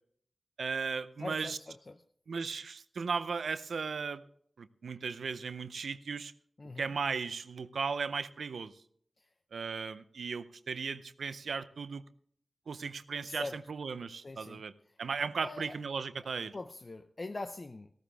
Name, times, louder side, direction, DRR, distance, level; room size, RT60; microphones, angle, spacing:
voice 1, 0.6-1.6 2.3-4.2 4.6-6.3 6.8-8.7 9.5-12.0 12.7-14.7 15.0-16.5, right 5 dB, 90° right, 13 dB, 0.6 m, -36 dB
voice 2, 1.2-2.0 6.6-6.9 9.2-9.3 13.3-13.6 14.2-14.6 15.4-15.7 16.5-17.9, left 2 dB, 50° left, 7 dB, 0.7 m, -42 dB
14.5 x 13.5 x 3.4 m, 0.63 s
cardioid pair, 45°, 0 cm